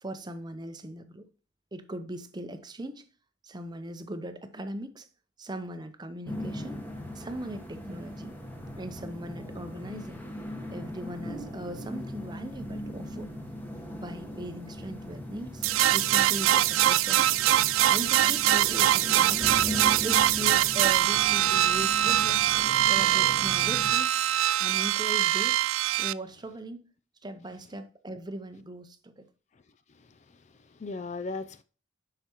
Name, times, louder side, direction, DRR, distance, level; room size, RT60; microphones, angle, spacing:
voice 1, 0.0-1.3 1.7-3.1 3.4-5.1 5.4-8.3 8.8-10.2 10.7-13.3 13.9-17.4 17.9-19.5 20.0-22.5 22.8-24.2 24.6-25.6 26.0-26.9 27.2-29.3, right 1 dB, 20° right, 0.6 m, -39 dB
sound 1, 6.3-23.9, equal, 10° left, 1.1 m, -39 dB
sound 2, 15.6-26.1, right 13 dB, 85° right, 0.3 m, -23 dB
voice 2, 29.9-31.6, left 3 dB, 35° left, 0.4 m, -39 dB
8.2 x 5.7 x 3.0 m
head